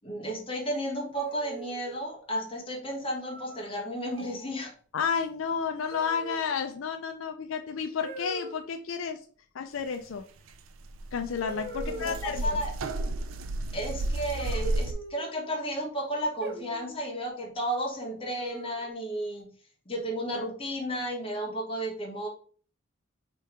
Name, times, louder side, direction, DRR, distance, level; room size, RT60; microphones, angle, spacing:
voice 1, 0.0-4.7 11.8-12.7 13.7-19.5 19.8-22.3, equal, 25° left, -1 dB, 1.3 m, -33 dB
sound 1, 1.2-2.0 3.3-3.7 4.1-4.5 5.9-6.5 8.0-8.6 10.5-10.6 11.4-12.4 14.3-15.4 16.4-17.0 18.3-18.9, right 1 dB, 60° right, 1.0 m, -42 dB
voice 2, 4.9-9.2 9.5-10.2 11.1-12.4, left 6 dB, 80° left, 6 dB, 0.4 m, -31 dB
sound 2, 10.5-10.6 10.7-14.9, right 2 dB, 85° right, 0.4 m, -32 dB
3.3 x 3.1 x 4.8 m, 0.43 s
head